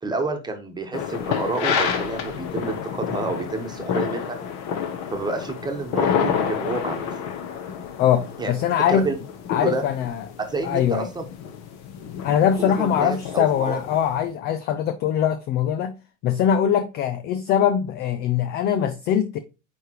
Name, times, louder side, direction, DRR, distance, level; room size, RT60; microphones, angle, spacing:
voice 1, 0.0-4.4 5.1-7.1 8.4-8.5 8.9-9.1 9.6-9.8 10.4-11.2 12.6-13.8, right 3 dB, 10° right, 1.3 m, -29 dB
sound 1, 0.9-14.1, left 7 dB, 45° left, 1.3 m, -29 dB
voice 2, 8.0-9.1 9.5-10.3 10.6-11.1 12.2-16.0 16.2-19.4, left 9 dB, 30° left, 0.4 m, -22 dB
9.4 x 3.3 x 3.0 m
supercardioid pair, 120°, 38 cm